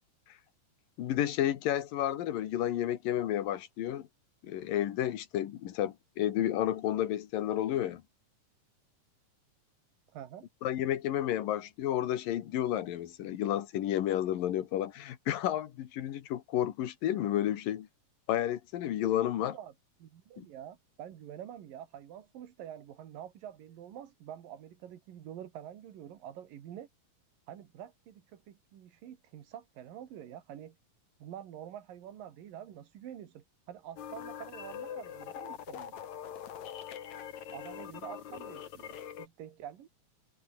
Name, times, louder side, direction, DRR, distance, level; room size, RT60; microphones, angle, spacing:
voice 1, 1.0-4.1 4.4-8.0 10.6-17.9 18.3-19.6 20.4-20.5, left 12 dB, 80° left, 3.2 m, -31 dB
voice 2, 10.1-10.5 19.4-19.7 20.0-26.9 27.5-30.8 31.2-36.0 37.5-39.9, right 10 dB, 80° right, 3.6 m, -47 dB
sound 1, 34.0-39.3, left 9 dB, 60° left, 3.0 m, -43 dB
omnidirectional pair, 3.9 m